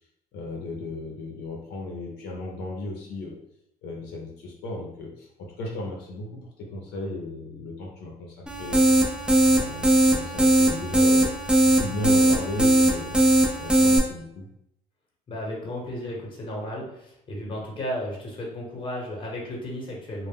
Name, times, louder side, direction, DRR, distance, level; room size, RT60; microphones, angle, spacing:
voice 1, 0.3-3.4 3.8-8.9 9.5-11.3 11.6-13.2 13.6-14.5, left 2 dB, 75° left, -1 dB, 0.6 m, -35 dB
sound 1, 8.5-14.0, right 1 dB, 5° right, 0.4 m, -20 dB
voice 2, 15.3-20.3, left 1 dB, 30° left, -2 dB, 0.9 m, -34 dB
2.1 x 2.0 x 3.4 m, 0.79 s
cardioid pair, 110°, 17 cm